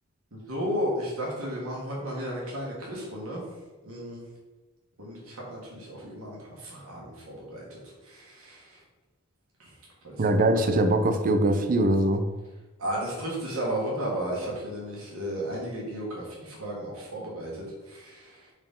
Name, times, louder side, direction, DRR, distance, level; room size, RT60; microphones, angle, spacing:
voice 1, 0.3-3.4 3.8-4.2 5.0-8.8 9.6-9.7 10.0-10.1 12.8-18.4, equal, 70° right, -4 dB, 1.4 m, -34 dB
voice 2, 10.2-12.2, right 1 dB, 40° right, 7 dB, 0.5 m, -22 dB
4.8 x 3.7 x 5.3 m, 1.2 s
head